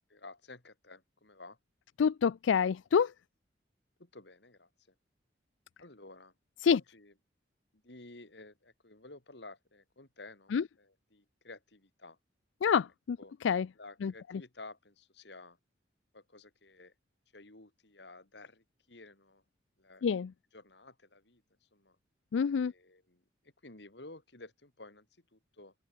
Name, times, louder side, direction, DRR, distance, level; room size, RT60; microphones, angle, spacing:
voice 1, 0.1-1.6 4.0-4.9 5.8-6.3 6.7-7.1 7.7-12.2 13.2-13.4 13.8-15.6 16.1-16.9 17.3-19.4 19.8-20.1 20.5-21.4 21.7-22.0 22.6-25.1 25.3-25.7, left 2 dB, 65° left, 3.0 m, -52 dB
voice 2, 2.0-3.1 6.6-6.8 10.5-10.6 12.6-13.7 14.0-14.1 20.0-20.3 22.3-22.7, left 6 dB, 90° left, 0.4 m, -27 dB
open air
head